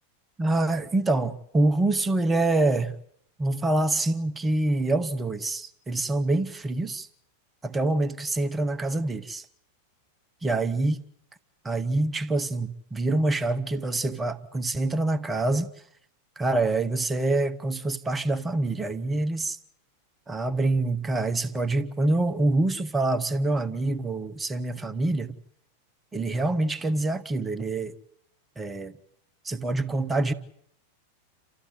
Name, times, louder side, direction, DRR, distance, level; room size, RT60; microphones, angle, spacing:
voice 1, 0.4-2.9 3.4-7.1 7.6-9.5 10.4-11.0 11.6-15.7 16.4-19.6 20.3-25.4 26.1-27.9 28.6-28.9 29.4-30.3, right 2 dB, 15° right, 1.2 m, -26 dB
29.0 x 14.5 x 9.3 m
figure-of-eight pair, 90°, 0 cm